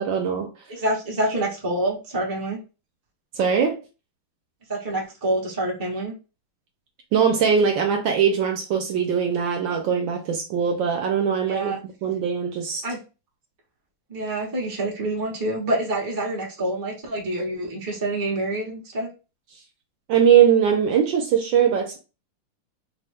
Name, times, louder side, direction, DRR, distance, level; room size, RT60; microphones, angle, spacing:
voice 1, 0.0-0.5 3.4-3.8 7.1-12.8 20.1-22.0, right 7 dB, 70° right, 1.2 m, -21 dB
voice 2, 0.7-2.6 4.7-6.1 11.5-11.8 12.8-13.0 14.1-19.1, right 1 dB, 20° right, 0.6 m, -27 dB
4.3 x 2.2 x 3.4 m
omnidirectional pair, 2.4 m